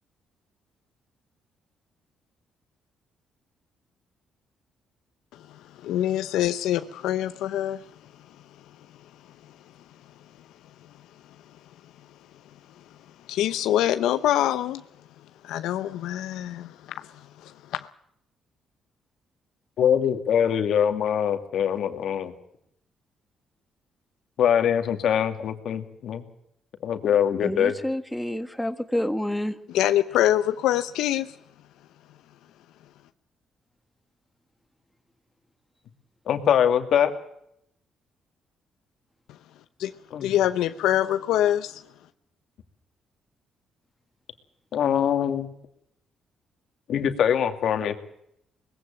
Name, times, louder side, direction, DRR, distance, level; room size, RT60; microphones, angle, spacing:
voice 1, 5.3-7.8 13.3-14.8 15.4-17.9 29.7-31.4 39.8-39.9 40.2-41.8, left 12 dB, 90° left, 0.8 m, -25 dB
voice 2, 19.8-22.3 24.4-26.2 26.8-27.7 36.3-37.1 40.1-40.3 44.7-45.5 46.9-48.0, left 9 dB, 70° left, 2.3 m, -23 dB
voice 3, 27.4-29.6, left 1 dB, 5° left, 1.6 m, -28 dB
20.5 x 15.5 x 8.9 m
cardioid pair, 90°, 0 cm